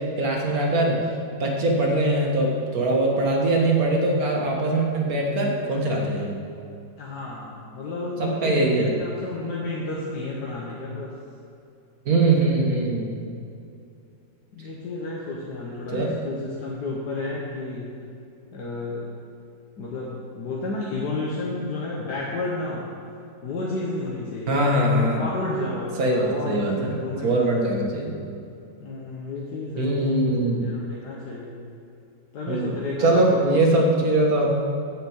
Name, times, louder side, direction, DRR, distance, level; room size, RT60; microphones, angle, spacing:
voice 1, 0.2-1.0 1.4-6.4 8.2-8.9 12.1-13.2 15.9-16.1 24.5-25.3 26.0-28.1 29.8-30.7 32.5-32.7 33.0-34.5, right 2 dB, 55° right, -1 dB, 1.9 m, -22 dB
voice 2, 7.0-11.1 14.5-18.0 18.5-19.1 19.8-22.9 23.4-24.8 25.1-27.6 28.8-30.2 30.6-31.5 32.3-33.6, left 2 dB, 65° left, -4 dB, 1.7 m, -31 dB
8.6 x 6.7 x 8.0 m, 2.5 s
omnidirectional pair, 1.9 m